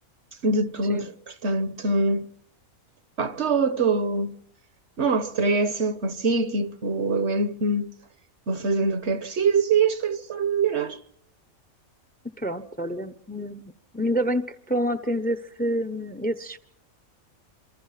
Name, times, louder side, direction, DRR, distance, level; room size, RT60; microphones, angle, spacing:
voice 1, 0.4-2.3 3.2-4.3 5.0-7.9 8.5-11.0, right 3 dB, 55° right, 1.4 m, -24 dB
voice 2, 12.4-16.6, equal, 5° left, 0.9 m, -28 dB
27.5 x 24.5 x 5.9 m
omnidirectional pair, 1.4 m